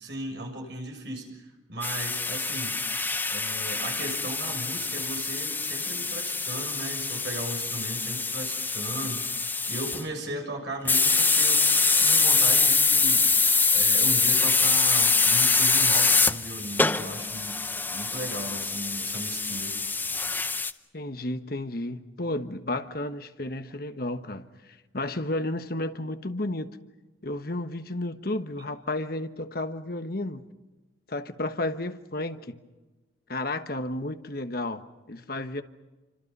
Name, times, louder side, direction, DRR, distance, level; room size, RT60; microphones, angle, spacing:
voice 1, 0.0-2.9 3.3-9.2 9.7-13.3 13.7-19.8, right 1 dB, 65° right, 6.5 m, -37 dB
sound 1, 1.8-10.0 10.9-20.7, left 4 dB, 10° left, 0.7 m, -24 dB
voice 2, 20.9-24.5 24.9-26.7 27.2-30.4 31.1-32.6 33.3-35.6, left 2 dB, 50° left, 1.3 m, -32 dB
28.5 x 25.5 x 5.5 m
head